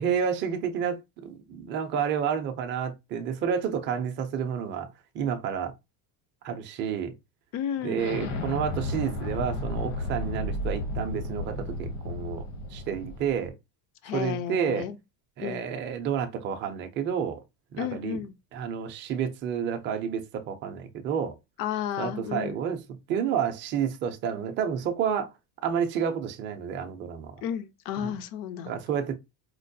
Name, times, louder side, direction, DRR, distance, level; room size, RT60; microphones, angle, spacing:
voice 1, 0.0-4.9 5.1-5.7 6.4-7.1 7.8-12.5 12.7-13.5 14.1-14.9 15.4-17.4 17.7-18.2 18.5-21.3 22.0-22.8 23.1-25.3 25.6-27.4 28.0-28.1 28.7-29.1, right 7 dB, 25° right, 0.4 m, -30 dB
voice 2, 7.5-8.1 14.0-15.0 15.4-15.6 17.8-18.3 21.6-22.6 27.4-28.8, left 10 dB, 50° left, 0.5 m, -32 dB
Explosion, 8.0-13.5, left 2 dB, 80° left, 1.1 m, -33 dB
4.4 x 2.2 x 2.6 m
cardioid pair, 165°, 45 cm